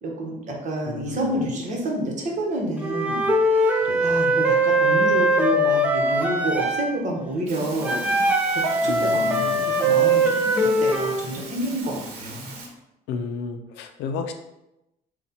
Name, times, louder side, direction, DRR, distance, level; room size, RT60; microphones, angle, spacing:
voice 1, 0.0-12.5, right 1 dB, 45° right, 0 dB, 1.1 m, -29 dB
voice 2, 0.9-1.5 3.8-4.2 8.8-10.0 13.1-14.3, left 5 dB, 85° left, 6 dB, 0.5 m, -33 dB
Wind instrument woodwind instrument, 2.8-6.9 7.8-11.2, right 1 dB, 10° right, 0.6 m, -21 dB
sound 1, 7.5-12.7, right 3 dB, 85° right, 1.0 m, -39 dB
4.1 x 2.4 x 4.1 m, 0.90 s
cardioid pair, 110°, 17 cm